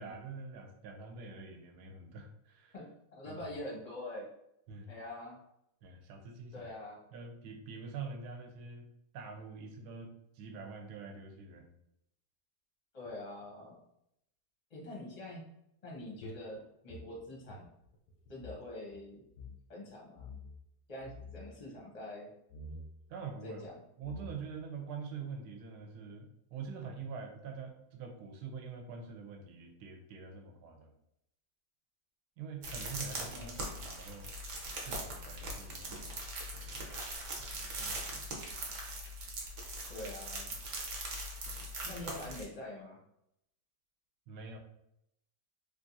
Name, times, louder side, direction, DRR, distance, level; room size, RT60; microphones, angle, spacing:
voice 1, 0.0-2.7 3.3-3.4 4.7-4.9 5.8-6.7 7.1-8.8 9.1-11.7 21.1-21.2 23.1-23.7 24.0-30.9 32.4-34.3 34.7-36.3 36.5-36.9 37.8-38.3 44.3-44.6, right 5 dB, 75° right, 3 dB, 1.1 m, -45 dB
voice 2, 2.7-4.3 4.9-5.4 6.5-7.0 12.9-13.8 14.7-15.5 15.8-17.7 18.3-19.2 19.7-20.3 20.9-22.3 23.4-23.7 33.2-33.6 39.9-40.5 41.8-43.0, left 1 dB, 40° left, -3 dB, 0.6 m, -45 dB
sound 1, 16.2-18.6 18.9-19.0 19.3-19.6 20.2-20.6 21.0-21.5 22.5-22.9 23.7-23.8 24.0-24.6, left 1 dB, 70° left, 0.9 m, -48 dB
sound 2, 32.6-42.4, right 1 dB, 60° right, 0.9 m, -41 dB
3.3 x 2.4 x 2.6 m, 0.79 s
omnidirectional pair, 1.8 m